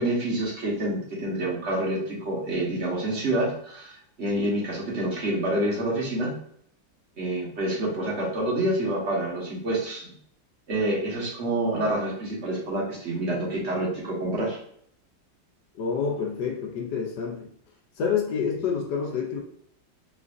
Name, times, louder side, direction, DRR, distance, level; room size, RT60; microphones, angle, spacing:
voice 1, 0.0-6.3 7.2-10.1 10.7-14.6, right 1 dB, 40° right, -4 dB, 1.4 m, -27 dB
voice 2, 15.7-17.5 18.0-19.4, left 6 dB, 70° left, 1 dB, 1.2 m, -28 dB
4.1 x 3.2 x 2.5 m, 0.65 s
omnidirectional pair, 2.1 m